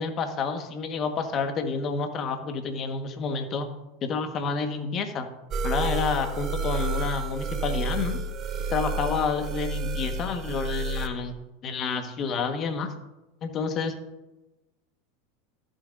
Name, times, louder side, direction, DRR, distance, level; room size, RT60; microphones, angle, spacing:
voice 1, 0.0-3.7 4.0-5.3 5.6-8.2 8.7-11.4 11.6-12.9 13.4-13.9, left 5 dB, 40° left, 6 dB, 1.4 m, -29 dB
sound 1, 5.5-11.1, right 2 dB, 35° right, 0.8 m, -30 dB
14.5 x 7.1 x 2.6 m, 1.0 s
hypercardioid pair, 90°, 0 cm